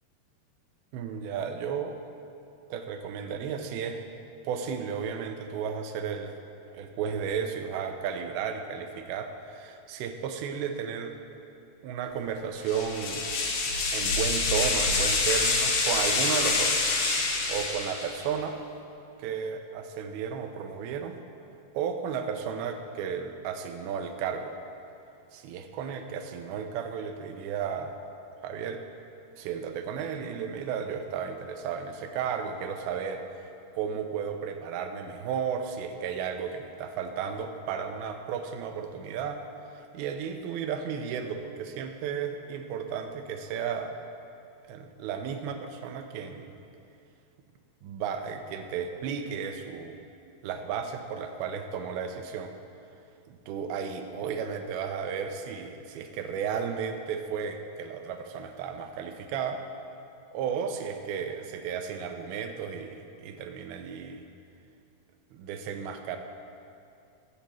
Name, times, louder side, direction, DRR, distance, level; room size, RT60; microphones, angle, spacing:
voice 1, 0.9-2.0 2.7-4.0 4.4-6.3 6.7-11.1 11.8-13.3 13.9-16.8 17.5-18.6 19.2-21.2 21.7-24.5 25.3-27.9 28.4-28.8 29.4-33.2 33.7-39.4 39.9-44.0 44.7-46.6 47.8-50.0 50.4-52.5 53.3-59.6 60.3-64.2 65.3-66.2, right 7 dB, 75° right, 5 dB, 2.4 m, -33 dB
sound 1, 12.7-18.2, left 3 dB, 75° left, 3.5 m, -26 dB
21.0 x 8.4 x 3.1 m, 2.6 s
omnidirectional pair, 4.9 m